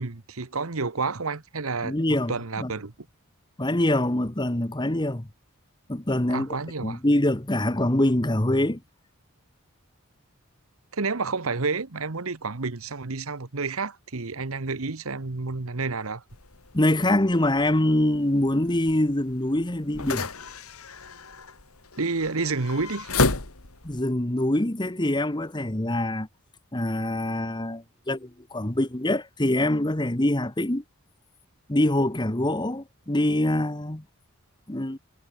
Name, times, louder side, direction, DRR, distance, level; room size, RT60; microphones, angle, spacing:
voice 1, 0.0-2.9 6.3-7.0 10.9-16.2 22.0-23.1, right 4 dB, 75° right, 1.2 m, -30 dB
voice 2, 1.8-2.7 3.6-5.3 5.9-6.6 6.8-8.8 16.7-20.3 23.8-26.3 26.7-30.8 31.7-34.0 34.7-35.0, left 1 dB, 20° left, 1.2 m, -24 dB
sound 1, 16.3-24.0, left 3 dB, 80° left, 2.6 m, -33 dB
head